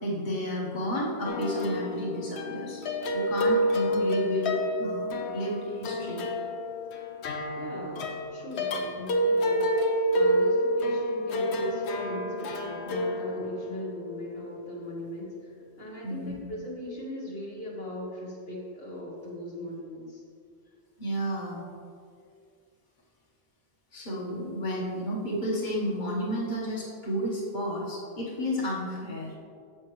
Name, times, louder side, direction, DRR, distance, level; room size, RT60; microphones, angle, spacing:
voice 1, 0.0-2.8 3.1-6.2 8.8-8.9 16.0-16.4 21.0-21.6 23.9-29.3, equal, 45° left, -4 dB, 1.6 m, -31 dB
sound 1, 1.3-15.0, equal, 80° left, 1.0 m, -29 dB
voice 2, 7.6-20.2, left 1 dB, 65° left, -5 dB, 1.5 m, -39 dB
9.7 x 7.2 x 3.2 m, 2.3 s
omnidirectional pair, 1.1 m